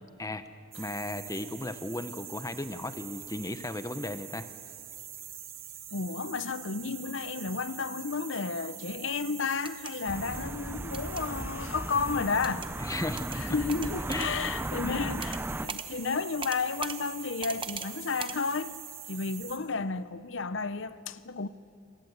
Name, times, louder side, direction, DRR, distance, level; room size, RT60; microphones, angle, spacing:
sound 1, 0.7-19.6, right 10 dB, 80° right, 3.4 m, -44 dB
voice 1, 0.8-4.5 12.8-13.6 14.1-14.4 14.8-15.0, left 2 dB, 15° left, 0.9 m, -35 dB
voice 2, 5.9-12.7 13.4-18.7 19.1-21.5, left 4 dB, 65° left, 0.8 m, -32 dB
sound 2, 9.6-9.9 10.9-11.2 12.4-12.7 13.2-13.4 13.7-14.3 15.2-15.4 15.7-15.9 16.4-17.0 17.4-17.9 18.2-18.4, right 6 dB, 25° right, 0.9 m, -38 dB
sound 3, 10.1-15.7, right 1 dB, 10° right, 0.5 m, -36 dB
27.5 x 17.5 x 8.2 m
head